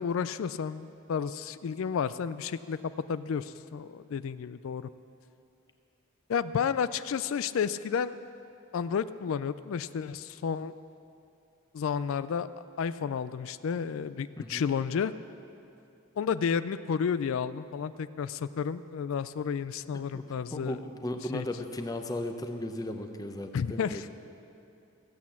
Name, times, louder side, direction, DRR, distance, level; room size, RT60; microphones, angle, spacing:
voice 1, 0.0-4.9 6.3-8.2 8.7-10.7 11.7-12.5 12.8-15.1 16.2-20.8 21.3-21.5 23.5-24.1, left 6 dB, 70° left, 14 dB, 0.3 m, -31 dB
voice 2, 20.5-24.1, left 1 dB, 15° left, 5 dB, 0.7 m, -36 dB
16.0 x 8.2 x 7.2 m, 2.6 s
head